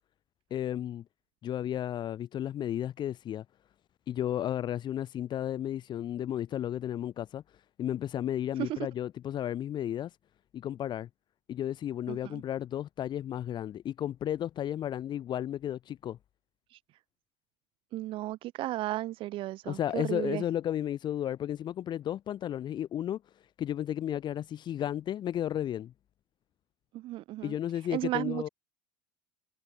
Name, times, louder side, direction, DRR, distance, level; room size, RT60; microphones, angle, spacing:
voice 1, 0.5-1.0 1.4-3.4 4.1-7.4 7.8-10.2 10.5-11.1 11.5-16.2 19.7-23.2 23.6-25.9 27.4-28.5, left 11 dB, 50° left, 2.0 m, -33 dB
voice 2, 12.1-12.4 16.7-16.8 17.9-20.4 26.9-28.5, right 16 dB, 60° right, 1.4 m, -35 dB
hypercardioid pair, 85°, 10 cm